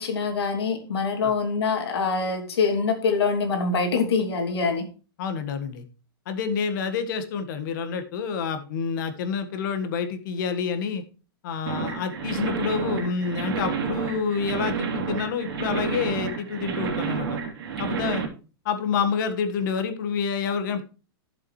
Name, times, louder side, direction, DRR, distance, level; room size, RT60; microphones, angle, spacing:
voice 1, 0.0-4.8, left 4 dB, 90° left, 4 dB, 2.9 m, -24 dB
voice 2, 5.2-5.8 6.2-11.0 11.4-17.3 17.8-18.2 18.6-20.8, left 6 dB, 50° left, 9 dB, 1.6 m, -28 dB
sound 1, 11.7-18.2, right 6 dB, 75° right, 2.9 m, -30 dB
12.5 x 7.2 x 3.2 m, 0.34 s
supercardioid pair, 155°, 13 cm